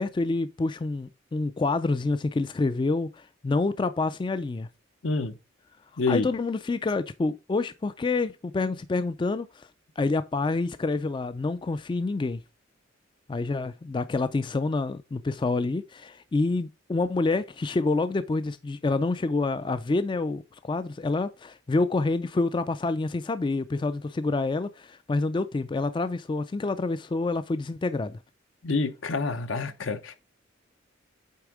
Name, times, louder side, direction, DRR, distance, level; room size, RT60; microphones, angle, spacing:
voice 1, 0.0-4.7 6.1-9.7 10.0-12.4 13.3-28.2, left 3 dB, 25° left, 0.3 m, -27 dB
voice 2, 5.0-5.3 6.0-6.3 28.6-30.2, left 3 dB, 70° left, 0.8 m, -27 dB
8.3 x 3.5 x 4.8 m
head